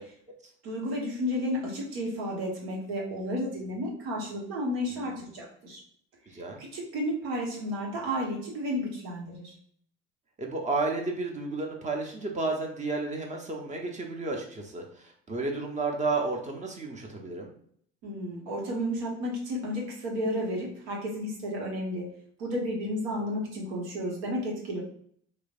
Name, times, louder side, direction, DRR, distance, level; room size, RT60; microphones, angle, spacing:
voice 1, 0.6-5.8 6.6-9.5 18.0-22.1 22.4-24.8, equal, 65° right, -2 dB, 1.1 m, -32 dB
voice 2, 6.3-6.6 10.4-17.5, right 3 dB, 20° right, 1 dB, 0.7 m, -32 dB
3.1 x 2.1 x 2.4 m, 0.62 s
hypercardioid pair, 65°, 33 cm